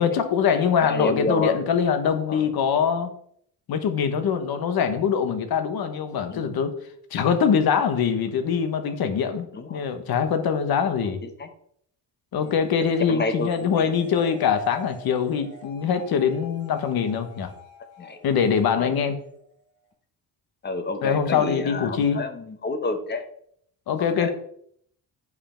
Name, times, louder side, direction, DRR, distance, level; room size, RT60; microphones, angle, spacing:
voice 1, 0.0-3.1 3.7-6.8 7.1-11.2 12.3-17.5 18.2-19.2 21.0-22.2 23.9-24.3, left 7 dB, 60° left, 8 dB, 1.2 m, -23 dB
voice 2, 0.8-1.6 2.3-2.5 6.3-6.4 9.5-9.8 11.2-11.5 13.1-13.9 18.0-18.2 18.8-19.0 20.6-23.2 24.0-24.3, left 3 dB, 25° left, 8 dB, 0.9 m, -29 dB
sound 1, 12.4-19.9, left 1 dB, 80° left, 2.2 m, -49 dB
9.6 x 5.6 x 4.4 m, 0.67 s
cardioid pair, 155°, 41 cm